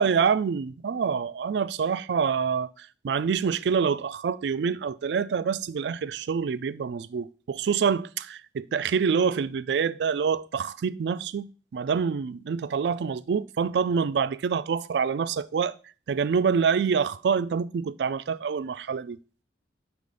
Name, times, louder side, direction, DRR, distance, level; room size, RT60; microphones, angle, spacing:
voice 1, 0.0-11.5 11.7-15.7 16.1-19.2, right 6 dB, 70° right, 0.3 m, -26 dB
4.9 x 4.8 x 5.3 m
head